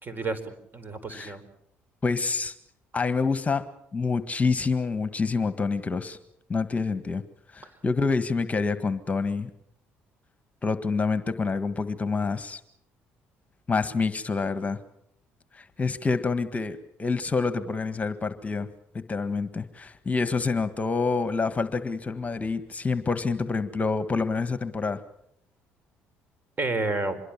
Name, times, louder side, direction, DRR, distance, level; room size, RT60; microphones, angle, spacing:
voice 1, 0.0-1.4 26.6-27.2, right 3 dB, 35° right, 12 dB, 4.6 m, -30 dB
voice 2, 2.0-2.5 2.9-3.6 3.9-6.2 6.5-7.2 7.5-9.5 10.6-12.6 13.7-14.8 15.5-18.7 18.9-25.0, left 4 dB, 25° left, 11 dB, 1.6 m, -27 dB
25.5 x 22.0 x 7.4 m, 0.74 s
supercardioid pair, 65°, 5 cm